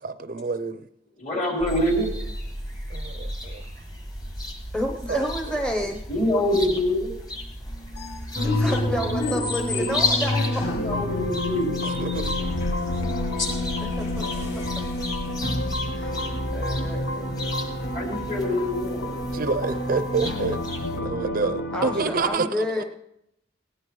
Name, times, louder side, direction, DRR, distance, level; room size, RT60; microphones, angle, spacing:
voice 1, 0.0-0.8 2.9-3.6 5.1-5.9 11.8-12.4 19.3-20.6 20.9-22.8, right 4 dB, 50° right, 0.5 m, -28 dB
voice 2, 1.2-2.1 6.1-7.1 10.6-11.8 13.4-13.5 17.9-19.2, left 1 dB, 45° left, 4.0 m, -25 dB
sound 1, 1.6-17.3, equal, 60° left, 3.2 m, -34 dB
sound 2, 1.7-21.0, left 3 dB, 20° left, 1.7 m, -35 dB
voice 3, 4.7-6.0 8.4-10.4 13.8-14.2 15.9-16.2 16.5-17.4 21.7-22.8, left 1 dB, 5° left, 0.8 m, -29 dB
sound 3, 8.3-22.2, left 1 dB, 80° left, 1.3 m, -29 dB
19.0 x 17.0 x 3.2 m
head